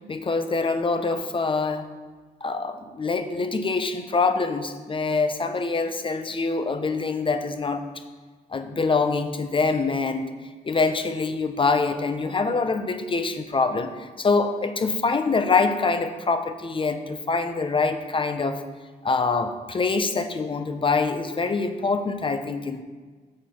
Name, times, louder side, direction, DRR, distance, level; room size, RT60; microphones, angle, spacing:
voice 1, 0.1-1.8 2.4-7.8 8.5-10.3 10.6-18.6 19.0-22.8, left 4 dB, 30° left, 8 dB, 0.7 m, -25 dB
7.4 x 4.3 x 6.2 m, 1.4 s
cardioid pair, 95°, 18 cm